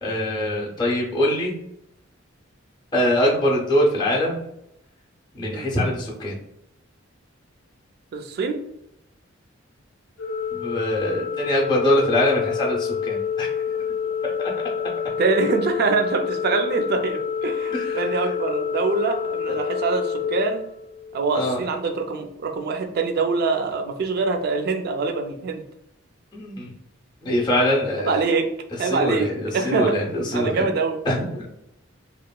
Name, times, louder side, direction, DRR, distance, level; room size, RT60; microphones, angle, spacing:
voice 1, 0.0-1.5 2.9-4.4 5.3-6.4 10.5-13.5 14.4-14.5 17.7-18.0 19.5-19.6 21.3-21.7 26.3-26.7 27.2-28.2 28.9-30.6 31.0-31.5, left 1 dB, 20° left, -2 dB, 0.5 m, -23 dB
voice 2, 8.1-8.6 15.2-20.7 21.1-25.6 28.0-28.5 28.8-29.9 30.3-31.0, right 4 dB, 50° right, 6 dB, 0.3 m, -24 dB
Organ, 10.2-21.3, left 7 dB, 75° left, 0.5 m, -28 dB
2.9 x 2.1 x 2.2 m, 0.80 s
head